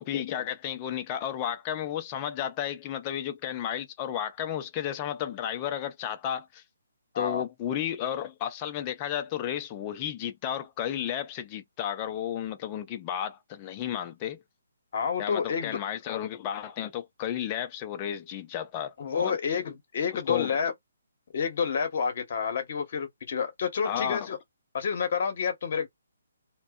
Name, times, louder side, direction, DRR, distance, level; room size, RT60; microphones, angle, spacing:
voice 1, 0.0-6.6 7.2-14.4 15.2-19.4 20.1-20.5 23.8-24.3, left 10 dB, 25° left, 0.5 m, -33 dB
voice 2, 14.9-15.8 19.0-20.7 21.3-24.4 24.7-25.9, left 6 dB, 50° left, 1.0 m, -29 dB
2.6 x 2.2 x 2.2 m
hypercardioid pair, 155°, 0 cm